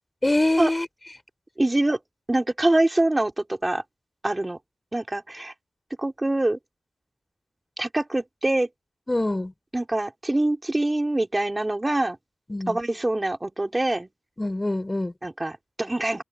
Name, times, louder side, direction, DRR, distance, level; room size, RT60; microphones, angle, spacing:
voice 1, 0.2-0.9 9.1-9.5 12.5-12.8 14.4-15.1, left 1 dB, 25° left, 4.2 m, -24 dB
voice 2, 1.6-2.0 2.3-3.8 4.2-4.6 4.9-5.5 6.0-6.6 7.8-8.7 9.7-12.2 12.7-14.1 15.2-16.2, right 1 dB, 25° right, 4.9 m, -24 dB
cardioid pair, 40°, 0 cm